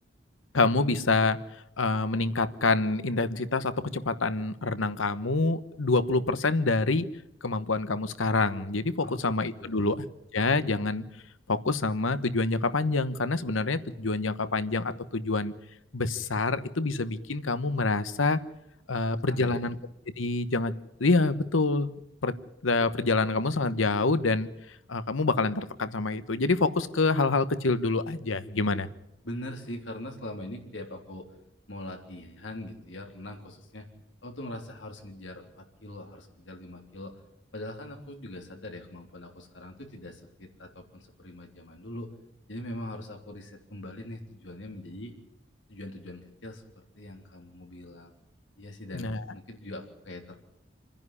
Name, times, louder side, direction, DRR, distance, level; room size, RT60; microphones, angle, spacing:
voice 1, 0.5-1.4 1.8-7.1 7.4-10.0 10.3-11.0 11.5-15.5 15.9-18.4 18.9-19.8 20.2-20.7 21.0-21.9 22.2-22.3 22.6-24.5 24.9-28.9 48.9-49.2, left 3 dB, 85° left, 13 dB, 1.1 m, -26 dB
voice 2, 9.0-10.0 19.3-19.7 29.2-31.3 31.7-33.9 34.2-37.2 37.5-42.1 42.5-45.1 45.7-48.1 48.6-50.3, left 1 dB, 65° left, 3 dB, 3.5 m, -42 dB
27.0 x 10.5 x 9.8 m, 0.82 s
head